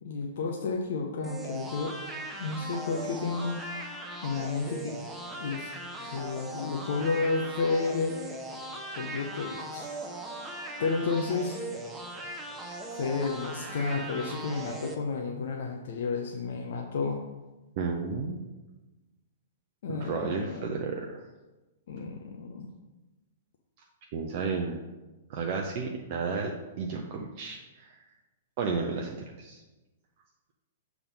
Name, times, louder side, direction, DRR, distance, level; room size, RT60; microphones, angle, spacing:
voice 1, 0.0-1.9 2.4-3.6 4.2-5.0 5.4-5.7 6.0-8.2 9.0-9.9 10.8-11.6 13.0-17.2 19.8-20.6 21.9-22.7, left 4 dB, 55° left, 1 dB, 0.7 m, -31 dB
sound 1, 1.2-14.9, right 1 dB, 10° right, 0.8 m, -39 dB
voice 2, 17.8-18.4 19.9-21.2 24.1-24.8 25.3-28.1 28.6-29.6, right 4 dB, 45° right, 1 dB, 0.6 m, -33 dB
7.0 x 3.6 x 5.2 m, 1.1 s
figure-of-eight pair, 110°, 0 cm